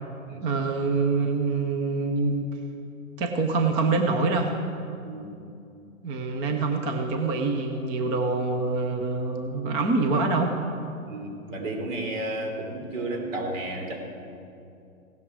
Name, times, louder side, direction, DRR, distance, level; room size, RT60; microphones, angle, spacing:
voice 1, 0.4-2.5 3.2-4.5 6.0-10.6, right 3 dB, 15° right, 5 dB, 0.5 m, -25 dB
voice 2, 5.0-5.3 11.0-14.0, right 1 dB, 65° right, 2 dB, 3.7 m, -32 dB
16.5 x 12.5 x 4.7 m, 2.6 s
hypercardioid pair, 140°, 41 cm